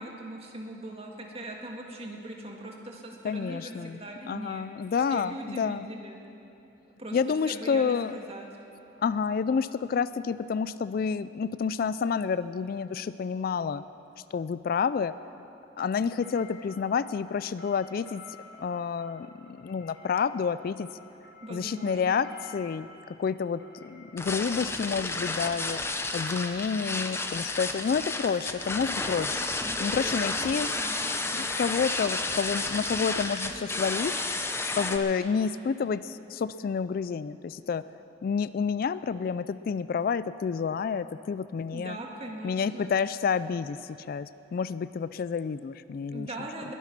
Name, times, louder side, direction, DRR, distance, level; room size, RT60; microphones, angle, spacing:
voice 1, 0.0-4.7 5.1-6.2 7.0-8.5 21.4-22.0 29.9-31.1 41.7-42.9 46.1-46.7, right 1 dB, 35° right, 1 dB, 1.7 m, -40 dB
voice 2, 3.2-4.0 4.3-5.9 7.1-8.2 9.0-13.8 14.3-15.1 15.8-18.2 18.6-20.9 21.5-25.8 26.1-29.4 29.8-30.7 31.3-34.1 34.8-37.8 38.2-42.0 42.4-46.3, left 6 dB, 50° left, 15 dB, 0.3 m, -29 dB
sound 1, 15.8-25.7, left 3 dB, 80° left, 4.7 m, -52 dB
sound 2, 24.2-35.0, left 3 dB, 15° left, 0.7 m, -31 dB
21.0 x 10.0 x 6.0 m, 2.8 s
head